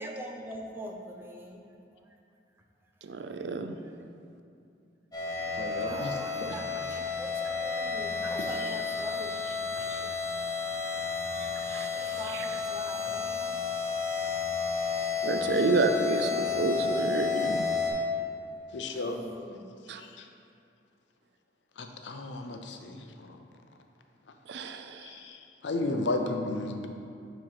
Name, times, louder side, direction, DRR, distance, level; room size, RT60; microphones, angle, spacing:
voice 1, 0.0-1.6 1.9-2.0 3.8-3.9 5.9-9.4 10.0-10.2 11.7-13.6 18.8-19.7, equal, 10° right, 0 dB, 0.5 m, -43 dB
voice 2, 3.0-3.7 11.6-11.9 15.2-17.7 19.9-20.0 24.5-25.1, right 3 dB, 70° right, 7 dB, 0.4 m, -29 dB
sound 1, 5.1-17.9, left 5 dB, 20° left, 1.0 m, -31 dB
voice 3, 5.5-6.2 8.6-8.7 9.8-10.0 18.7-19.2 20.0-20.3 21.8-23.4 25.0-26.9, left 2 dB, 80° left, 4 dB, 0.6 m, -34 dB
7.4 x 3.1 x 5.7 m, 2.5 s
head